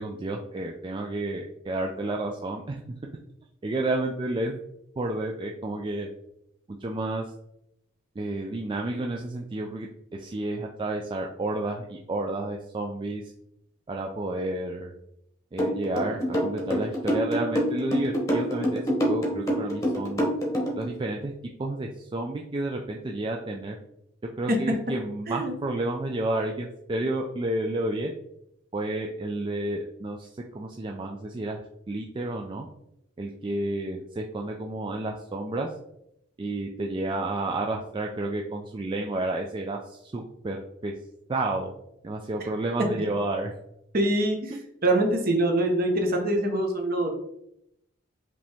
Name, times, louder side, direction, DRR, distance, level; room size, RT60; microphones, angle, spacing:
voice 1, 0.0-2.8 3.6-4.5 5.0-6.1 6.7-7.3 8.2-13.2 13.9-14.9 15.5-18.8 19.1-20.3 20.8-21.3 21.6-23.8 24.4-28.1 28.7-30.3 30.5-31.6 31.9-32.7 33.2-35.7 36.4-40.9 41.3-41.7 42.0-43.5 44.5-44.6, right 2 dB, 25° right, 1 dB, 0.3 m, -31 dB
sound 1, 15.6-20.8, equal, 15° left, 0.9 m, -25 dB
voice 2, 43.9-47.1, right 1 dB, 50° right, 3 dB, 0.9 m, -24 dB
5.0 x 2.8 x 3.4 m, 0.78 s
head